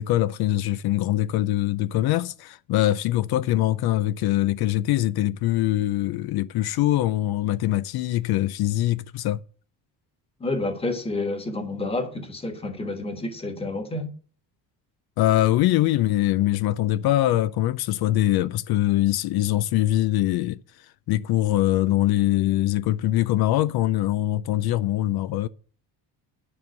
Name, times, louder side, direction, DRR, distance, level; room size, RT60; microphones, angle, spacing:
voice 1, 0.0-9.4 15.2-20.6 21.1-25.5, left 14 dB, 65° left, 0.5 m, -23 dB
voice 2, 10.4-14.1, left 2 dB, 15° left, 1.4 m, -29 dB
9.9 x 5.3 x 7.7 m
cardioid pair, 170°, 42 cm